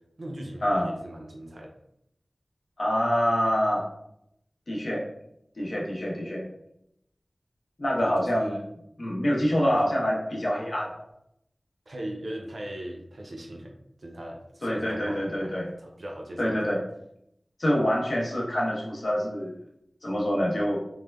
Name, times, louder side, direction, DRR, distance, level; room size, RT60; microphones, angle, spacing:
voice 1, 0.2-1.7 8.0-8.6 9.6-9.7 11.9-13.7 14.0-16.6, right 1 dB, 75° right, 1 dB, 0.5 m, -39 dB
voice 2, 2.8-3.8 4.7-5.0 5.6-6.5 7.8-8.5 9.0-11.0 14.6-15.7 16.4-16.8 17.6-19.6 20.0-20.8, equal, 70° left, -4 dB, 0.7 m, -26 dB
3.2 x 2.1 x 2.2 m, 0.77 s
wide cardioid pair, 40°, 0 cm